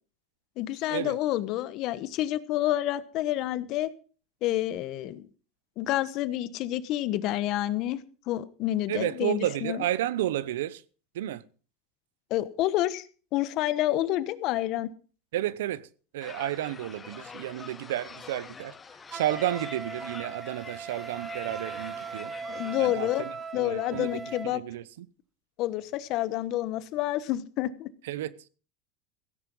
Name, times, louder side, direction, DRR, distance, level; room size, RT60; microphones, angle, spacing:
voice 1, 0.6-3.9 4.4-5.3 5.8-8.0 8.3-9.8 12.3-13.0 13.3-14.9 22.5-23.3 23.5-24.6 25.6-27.9, left 14 dB, 55° left, 1.1 m, -28 dB
voice 2, 8.9-10.8 11.1-11.4 15.3-15.9 16.1-18.7 19.1-22.3 22.8-23.3 23.6-25.1 28.0-28.5, right 13 dB, 90° right, 0.8 m, -31 dB
sound 1, 16.2-22.8, left 5 dB, 20° left, 1.0 m, -46 dB
Wind instrument woodwind instrument, 19.1-24.5, right 4 dB, 20° right, 1.1 m, -39 dB
16.0 x 9.9 x 5.5 m
supercardioid pair, 125°, 0 cm